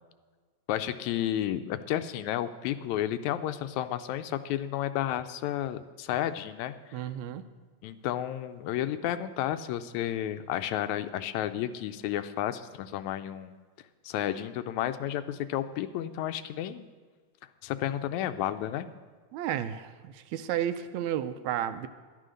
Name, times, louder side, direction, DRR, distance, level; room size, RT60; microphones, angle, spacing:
voice 1, 0.7-7.1 7.8-13.6 14.0-16.9 17.6-18.9, left 11 dB, 80° left, 11 dB, 1.9 m, -32 dB
voice 2, 6.9-7.5 19.3-21.9, right 11 dB, 80° right, 11 dB, 1.9 m, -32 dB
11.5 x 11.0 x 6.4 m, 1.5 s
omnidirectional pair, 3.4 m